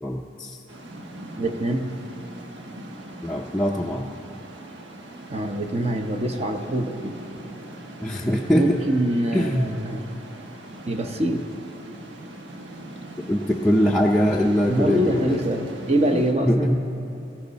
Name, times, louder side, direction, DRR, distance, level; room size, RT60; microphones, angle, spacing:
voice 1, 0.0-0.6 3.2-4.1 8.0-8.8 9.3-9.7 13.3-15.4 16.5-16.8, equal, 5° left, -3 dB, 0.5 m, -22 dB
sound 1, 0.7-16.3, right 1 dB, 80° right, 1.2 m, -40 dB
voice 2, 1.4-1.9 5.3-7.2 8.5-10.0 10.8-11.4 14.7-16.8, right 1 dB, 35° right, 5 dB, 0.7 m, -24 dB
17.0 x 15.0 x 4.1 m, 2.8 s
head